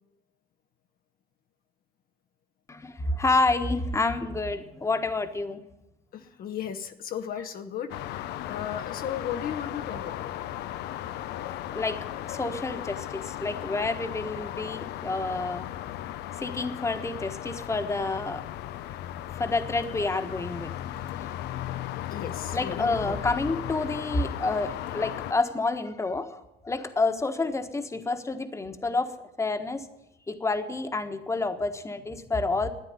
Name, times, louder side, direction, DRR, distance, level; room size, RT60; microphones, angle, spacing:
voice 1, 2.7-5.6 11.7-15.7 16.4-18.4 19.4-20.7 21.1-21.3 22.5-29.9 30.3-32.7, left 3 dB, 15° left, 8 dB, 1.4 m, -29 dB
voice 2, 6.1-10.3 22.1-23.2, left 9 dB, 60° left, 6 dB, 1.0 m, -35 dB
sound 1, 7.9-25.3, left 12 dB, 80° left, 0.7 m, -36 dB
13.0 x 9.8 x 9.6 m, 0.92 s
cardioid pair, 110°, 17 cm